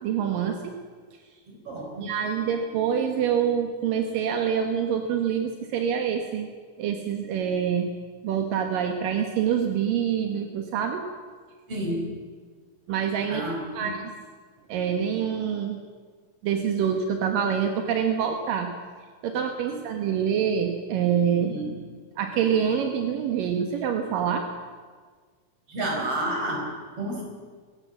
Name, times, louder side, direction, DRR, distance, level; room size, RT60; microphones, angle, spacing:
voice 1, 0.0-0.7 2.0-6.5 6.8-7.9 8.2-11.0 12.9-13.5 13.7-14.1 14.7-15.8 16.4-18.7 19.2-21.5 22.2-24.4, right 8 dB, 80° right, 4 dB, 3.0 m, -26 dB
voice 2, 1.5-2.1 11.7-12.0 13.3-13.9 19.7-19.8 21.4-21.8 25.7-27.2, right 1 dB, 40° right, 0 dB, 5.9 m, -30 dB
22.5 x 17.0 x 7.5 m, 1.6 s
omnidirectional pair, 3.9 m